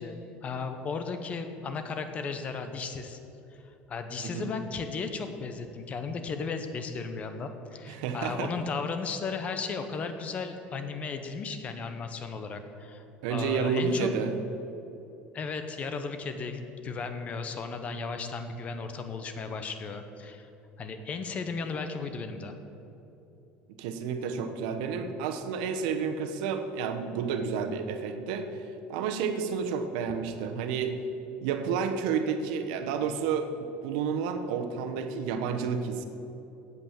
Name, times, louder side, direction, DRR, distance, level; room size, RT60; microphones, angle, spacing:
voice 1, 0.0-3.2 3.6-13.0 13.3-14.1 15.3-20.5 20.8-22.6, left 4 dB, 30° left, 7 dB, 0.9 m, -35 dB
voice 2, 7.9-8.5 13.2-14.3 23.8-31.0 31.4-36.0, right 6 dB, 85° right, 7 dB, 1.0 m, -30 dB
8.3 x 8.1 x 7.3 m, 3.0 s
cardioid pair, 140°, 4 cm